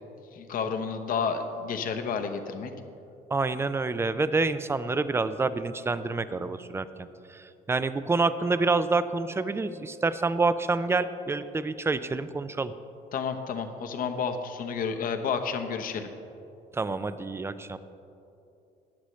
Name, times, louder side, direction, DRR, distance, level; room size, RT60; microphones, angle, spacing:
voice 1, 0.3-2.7 13.1-16.1, left 6 dB, 55° left, 7 dB, 0.9 m, -31 dB
voice 2, 3.3-12.7 16.7-17.8, right 3 dB, 15° right, 13 dB, 0.4 m, -28 dB
14.5 x 9.8 x 3.2 m, 2.8 s
cardioid pair, 110°, 17 cm